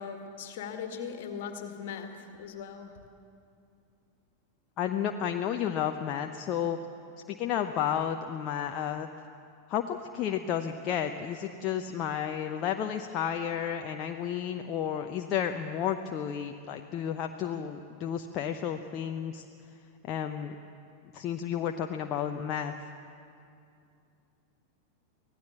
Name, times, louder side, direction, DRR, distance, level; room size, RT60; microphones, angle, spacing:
voice 1, 0.0-3.0, left 6 dB, 55° left, 6 dB, 2.0 m, -39 dB
voice 2, 4.8-6.8 7.3-9.1 9.7-19.4 20.1-20.6 21.1-22.7, left 9 dB, 35° left, 5 dB, 0.9 m, -32 dB
24.5 x 17.5 x 7.2 m, 2.5 s
figure-of-eight pair, 90°, 0 cm